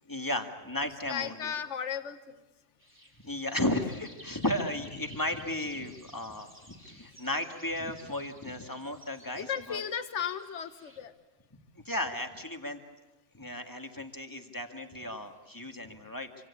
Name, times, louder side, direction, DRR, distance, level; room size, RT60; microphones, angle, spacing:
voice 1, 0.1-1.5 3.2-9.8 11.9-12.8 13.3-16.3, left 1 dB, 15° left, 5 dB, 2.0 m, -34 dB
voice 2, 1.1-2.2 9.4-11.1, left 8 dB, 70° left, 10 dB, 1.5 m, -35 dB
sound 1, 2.8-11.0, right 1 dB, 10° right, 2.9 m, -54 dB
27.0 x 25.5 x 8.5 m, 1.1 s
omnidirectional pair, 1.3 m